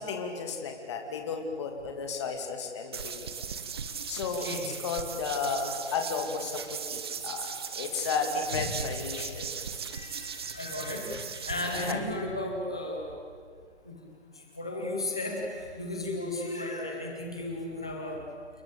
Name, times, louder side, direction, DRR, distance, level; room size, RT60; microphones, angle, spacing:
voice 1, 0.0-3.5 4.1-7.5 7.7-9.5 11.6-12.1, left 5 dB, 25° left, 3 dB, 2.7 m, -33 dB
sound 1, 2.9-11.9, right 6 dB, 20° right, 1.0 m, -38 dB
voice 2, 9.9-13.0 13.8-14.0 14.6-18.2, left 1 dB, 5° left, 0 dB, 0.6 m, -34 dB
29.0 x 21.0 x 8.6 m, 2.2 s
hypercardioid pair, 170°, 34 cm